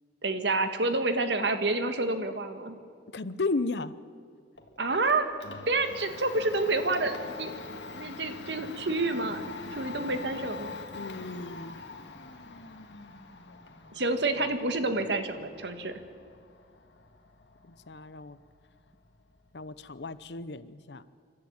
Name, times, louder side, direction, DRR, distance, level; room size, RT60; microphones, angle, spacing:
voice 1, 0.2-2.8 4.8-5.3 5.7-9.4 9.7-10.7 13.9-16.0, right 2 dB, 75° right, 8 dB, 1.7 m, -29 dB
voice 2, 3.1-3.9 10.9-11.8 13.5-13.6 17.7-18.4 19.5-21.0, left 3 dB, 70° left, 15 dB, 0.8 m, -34 dB
Domestic sounds home sounds, 4.6-20.4, left 3 dB, 90° left, 1.9 m, -45 dB
28.0 x 12.5 x 8.8 m, 2.1 s
head